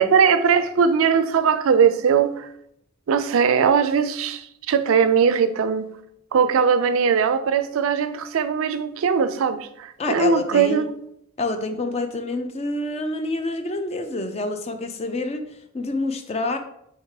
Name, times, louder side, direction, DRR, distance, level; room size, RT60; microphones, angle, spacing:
voice 1, 0.0-2.5 3.1-5.9 6.3-10.8, right 6 dB, 80° right, 0.4 m, -20 dB
voice 2, 10.0-10.8 11.4-16.6, left 2 dB, 30° left, 0.4 m, -27 dB
3.4 x 3.2 x 4.7 m
head